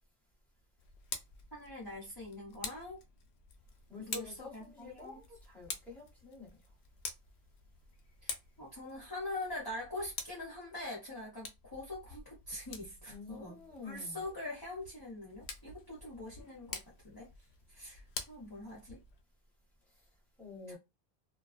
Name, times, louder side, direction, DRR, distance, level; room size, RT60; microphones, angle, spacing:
Tick, 0.8-19.2, left 5 dB, 80° left, 0.8 m, -48 dB
voice 1, 1.5-3.0 4.0-5.2 8.2-17.3 17.7-19.0 20.7-20.8, left 2 dB, 25° left, 0.8 m, -44 dB
voice 2, 3.9-6.6 13.1-14.2 20.4-20.8, left 3 dB, ahead, 1.1 m, -48 dB
2.4 x 2.1 x 2.4 m
omnidirectional pair, 1.1 m